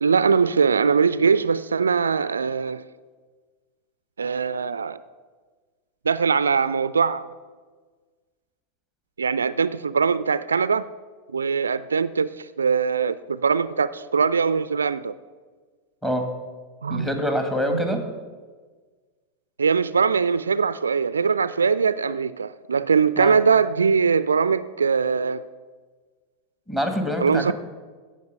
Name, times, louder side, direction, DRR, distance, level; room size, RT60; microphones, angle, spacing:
voice 1, 0.0-2.8 4.2-5.0 6.1-7.2 9.2-10.9 11.3-15.1 16.8-17.1 17.7-17.8 19.6-25.4 27.2-27.5, right 5 dB, 70° right, 0.4 m, -21 dB
voice 2, 16.9-18.0 23.2-23.4 26.7-27.5, equal, 10° left, 2.2 m, -25 dB
16.5 x 6.5 x 6.7 m
figure-of-eight pair, 90°, 0 cm